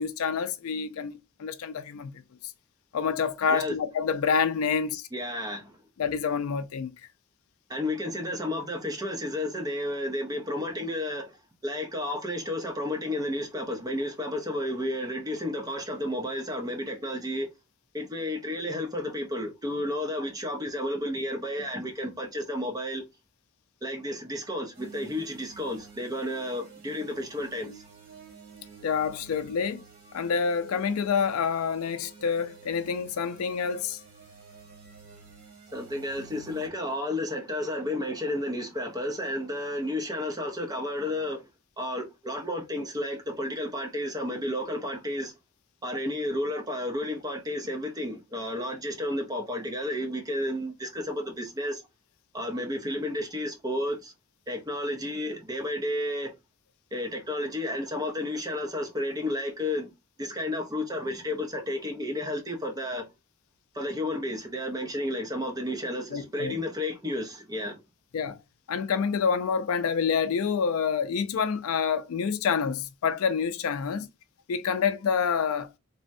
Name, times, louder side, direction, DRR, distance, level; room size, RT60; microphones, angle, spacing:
voice 1, 0.0-2.1 2.9-5.1 6.0-6.9 28.8-29.8 30.1-34.0 66.1-66.6 68.1-68.4 68.7-74.1 74.5-75.7, left 6 dB, 80° left, 0.4 m, -27 dB
voice 2, 5.1-5.8 7.7-11.3 11.6-17.5 17.9-23.0 23.8-27.8 35.7-41.4 41.8-45.3 45.8-51.8 52.3-54.1 54.5-56.4 56.9-59.9 60.2-63.1 63.7-67.8, left 1 dB, 15° right, 0.5 m, -32 dB
sound 1, 24.7-36.7, right 5 dB, 45° right, 1.4 m, -50 dB
3.3 x 2.1 x 2.6 m
head